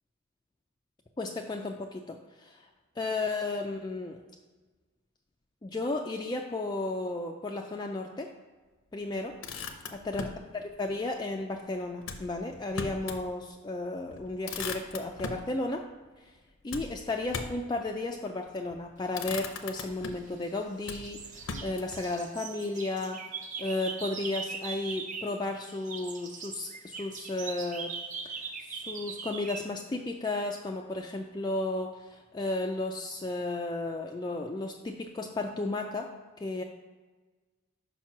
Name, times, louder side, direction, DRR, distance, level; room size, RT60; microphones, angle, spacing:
voice 1, 1.2-2.7 3.0-4.2 5.6-8.3 8.9-9.3 10.1-10.3 10.5-15.9 16.2-16.3 16.6-23.2 23.6-27.9 28.2-28.4 28.7-36.1 36.4-36.6, left 2 dB, 20° left, 2 dB, 0.3 m, -34 dB
Motor vehicle (road), 9.2-10.4 12.0-13.3 13.7-13.8 14.1-15.5 16.7-17.7 18.5-18.8 19.1-20.3 20.8-22.0, left 4 dB, 70° left, 0.6 m, -39 dB
sound 1, 19.8-20.6 20.9-25.4 25.7-29.7, right 5 dB, 35° right, 0.5 m, -40 dB
5.4 x 4.4 x 5.9 m, 1.3 s
head